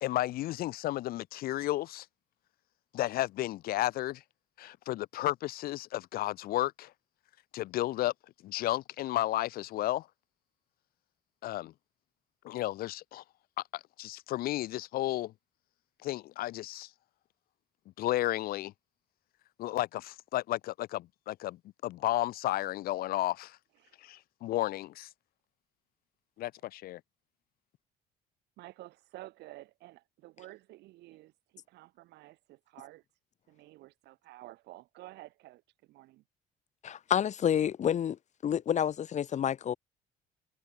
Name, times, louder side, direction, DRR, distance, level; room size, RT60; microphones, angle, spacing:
voice 1, 0.0-2.1 2.9-4.2 4.6-6.9 7.5-8.1 8.4-10.1 11.4-11.7 12.4-13.2 13.7-15.3 16.0-16.9 18.0-18.7 19.6-23.6 24.0-25.1 26.4-27.0, left 15 dB, 65° left, 0.4 m, -33 dB
voice 2, 28.6-33.0 33.5-36.2, right 18 dB, 80° right, 2.0 m, -51 dB
voice 3, 36.8-38.2 38.4-39.8, left 9 dB, 45° left, 1.0 m, -29 dB
cardioid pair, 110°, 17 cm